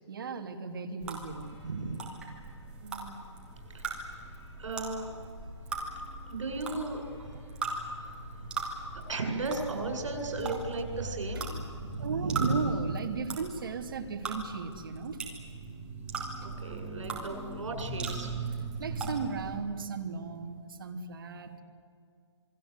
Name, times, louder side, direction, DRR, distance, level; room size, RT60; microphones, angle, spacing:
voice 1, 0.1-1.6 8.4-8.5 12.0-15.2 18.8-21.6, right 5 dB, 45° right, 4 dB, 2.9 m, -36 dB
sound 1, 1.0-19.5, right 3 dB, 5° right, 2.5 m, -39 dB
sound 2, 1.4-11.8, left 1 dB, 10° left, 4.7 m, -51 dB
voice 2, 1.6-2.1 2.8-3.4 3.7-4.2 4.6-5.1 6.2-7.4 7.7-8.5 8.9-12.9 15.1-15.2 16.4-18.3, right 3 dB, 80° right, 4 dB, 7.5 m, -36 dB
27.5 x 23.0 x 8.2 m, 2.3 s
hypercardioid pair, 175°, 15 cm